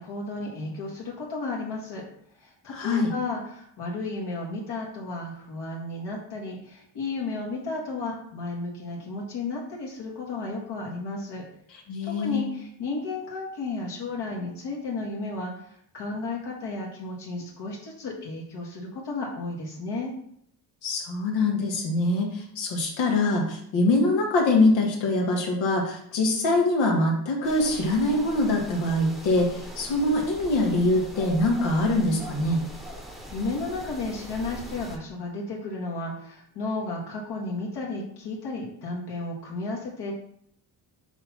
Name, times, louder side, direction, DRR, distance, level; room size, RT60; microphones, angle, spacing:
voice 1, 0.0-2.0 2.4-11.4 12.0-20.1 33.3-40.1, left 3 dB, 65° left, -2 dB, 1.7 m, -33 dB
voice 2, 2.7-3.1 11.9-12.5 20.8-32.6, left 2 dB, 80° left, 0 dB, 1.7 m, -24 dB
sound 1, 27.4-35.0, equal, ahead, 0.9 m, -41 dB
6.8 x 2.9 x 5.7 m, 0.67 s
cardioid pair, 125°, 44 cm